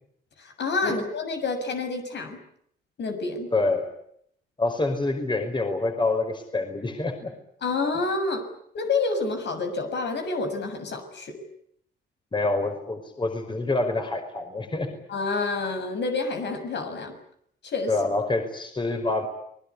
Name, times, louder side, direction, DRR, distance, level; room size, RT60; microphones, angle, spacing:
voice 1, 0.4-2.4 3.0-3.5 7.6-8.4 8.7-11.4 15.1-17.2 17.6-17.9, left 3 dB, 60° left, 6 dB, 7.1 m, -28 dB
voice 2, 3.5-3.9 4.6-7.3 12.3-14.9 17.9-19.3, left 2 dB, 25° left, 5 dB, 5.3 m, -26 dB
29.0 x 21.0 x 8.5 m, 0.68 s
cardioid pair, 90°, 20 cm